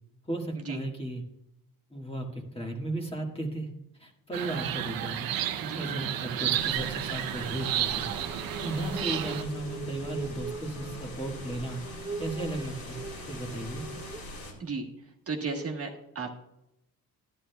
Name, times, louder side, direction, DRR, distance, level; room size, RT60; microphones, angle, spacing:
voice 1, 0.2-1.2 1.9-3.7 4.0-5.3 5.8-8.1 8.6-11.8 12.2-13.0 13.3-13.8, right 1 dB, 15° left, 2 dB, 1.6 m, -35 dB
sound 1, 4.3-9.4, right 11 dB, 70° right, 0.7 m, -32 dB
sound 2, 6.6-14.5, left 1 dB, 70° left, 2.7 m, -43 dB
sound 3, 7.5-14.3, right 4 dB, 10° right, 0.6 m, -42 dB
voice 2, 15.3-16.3, right 4 dB, 40° right, 0 dB, 1.3 m, -34 dB
11.5 x 11.5 x 2.3 m, 0.84 s
cardioid pair, 125°, 37 cm